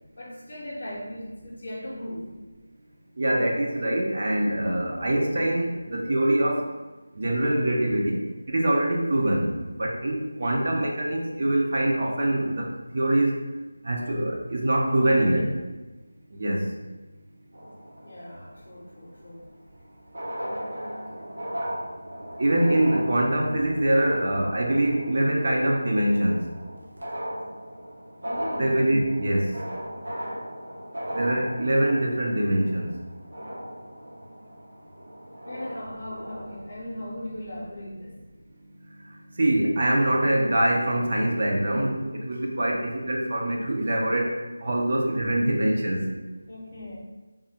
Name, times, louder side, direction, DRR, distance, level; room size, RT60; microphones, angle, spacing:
voice 1, 0.2-2.3 15.0-15.5 18.0-19.4 28.1-28.8 35.4-38.2 46.5-47.0, left 1 dB, 35° left, -9 dB, 0.7 m, -38 dB
voice 2, 3.2-6.6 7.2-8.2 8.5-9.5 9.8-12.7 12.9-13.3 13.9-15.4 16.3-16.6 22.4-26.4 28.6-29.5 31.1-32.9 39.4-44.3 44.6-46.0, right 1 dB, 40° right, -1 dB, 0.5 m, -24 dB
sound 1, 17.5-18.6 19.8-19.9 20.0-36.6, equal, 70° right, 0.9 m, -37 dB
3.5 x 2.1 x 4.2 m, 1.2 s
figure-of-eight pair, 175°, 0 cm